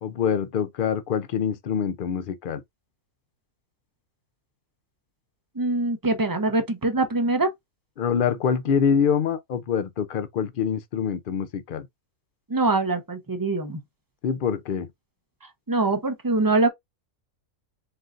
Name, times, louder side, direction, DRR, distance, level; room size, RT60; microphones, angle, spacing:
voice 1, 0.0-2.6 8.0-11.9 14.2-14.9, left 7 dB, 65° left, 0.5 m, -25 dB
voice 2, 5.6-7.5 12.5-13.8 15.7-16.7, right 2 dB, 30° right, 0.4 m, -23 dB
4.4 x 3.8 x 2.5 m
omnidirectional pair, 1.5 m